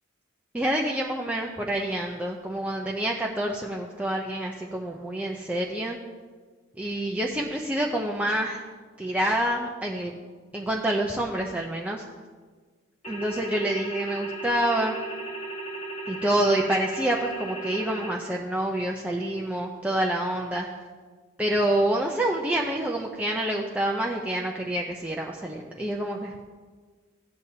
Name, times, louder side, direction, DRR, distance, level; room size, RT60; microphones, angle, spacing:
voice 1, 0.5-6.0 6.8-8.6 9.0-10.1 10.5-12.0 13.1-14.9 16.1-20.7 21.4-26.5, right 1 dB, 5° right, -1 dB, 0.5 m, -27 dB
sound 1, 13.0-18.1, right 2 dB, 35° left, 1.3 m, -36 dB
16.5 x 8.2 x 2.8 m, 1.5 s
head